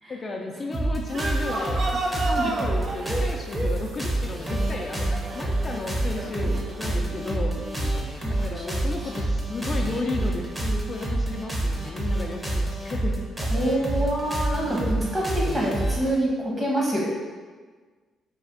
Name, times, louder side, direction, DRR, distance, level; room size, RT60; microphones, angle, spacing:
voice 1, 0.1-7.5 8.3-13.3, left 2 dB, 35° left, 1 dB, 0.4 m, -33 dB
sound 1, 0.7-16.1, right 1 dB, 15° right, 0.8 m, -27 dB
sound 2, 1.1-7.0, right 2 dB, 55° right, 0.5 m, -33 dB
voice 2, 7.1-8.7 13.5-17.0, right 1 dB, 35° right, -3 dB, 1.3 m, -27 dB
4.2 x 2.3 x 3.8 m, 1.5 s
cardioid pair, 90°, 0 cm